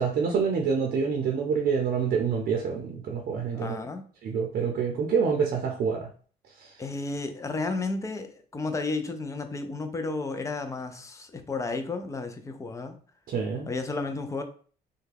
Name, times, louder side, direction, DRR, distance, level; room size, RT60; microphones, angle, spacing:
voice 1, 0.0-3.8 4.2-6.1 6.6-6.7 13.3-13.7, right 6 dB, 55° right, 0.6 m, -27 dB
voice 2, 3.5-4.0 6.8-13.0 13.7-14.4, left 3 dB, 20° left, 0.5 m, -32 dB
3.3 x 2.2 x 3.3 m
cardioid pair, 110°, 17 cm